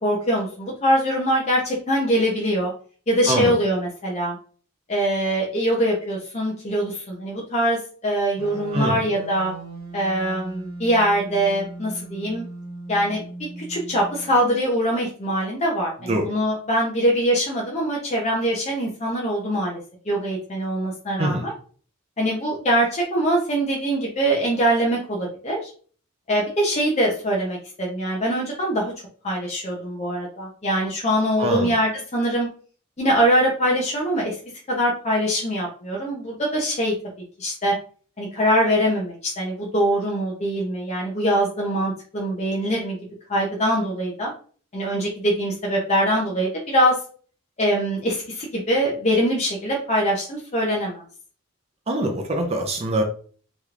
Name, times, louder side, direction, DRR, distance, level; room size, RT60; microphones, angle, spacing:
voice 1, 0.0-2.7 3.1-4.4 4.9-9.5 9.9-12.4 12.9-13.2 13.7-19.8 20.1-21.5 22.2-25.7 26.3-28.9 29.2-32.5 33.0-34.4 34.7-36.9 37.4-37.7 38.2-43.0 43.3-44.3 44.7-47.0 47.6-51.0, equal, 30° left, -3 dB, 0.6 m, -23 dB
sound 1, 8.4-14.4, right 1 dB, 90° right, 1.1 m, -38 dB
voice 2, 31.4-31.7 51.9-53.0, right 1 dB, 30° right, 2 dB, 0.5 m, -23 dB
3.3 x 2.9 x 2.4 m, 0.43 s
head